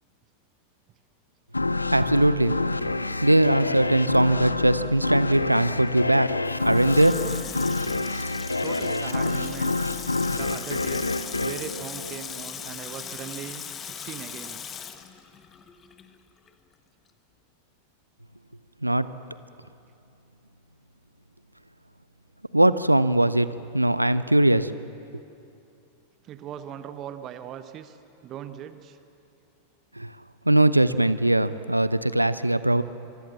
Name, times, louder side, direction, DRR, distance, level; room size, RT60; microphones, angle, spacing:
sound 1, 1.5-12.7, left 2 dB, 80° left, 0.7 m, -28 dB
voice 1, 1.9-2.6 3.2-6.3 6.6-7.2 18.8-19.1 22.5-23.5 23.7-24.8 30.0-30.1 30.5-32.8, right 1 dB, 85° right, 15 dB, 0.6 m, -20 dB
Water tap faucet / Sink (filling or washing), 6.4-16.2 16.5-16.6, left 7 dB, 25° left, 1.3 m, -39 dB
voice 2, 8.6-9.7 10.3-11.1 11.4-14.6 26.2-29.0, right 10 dB, 35° right, 11 dB, 1.0 m, -39 dB
25.0 x 23.5 x 7.3 m, 2.7 s
figure-of-eight pair, 90°, 0 cm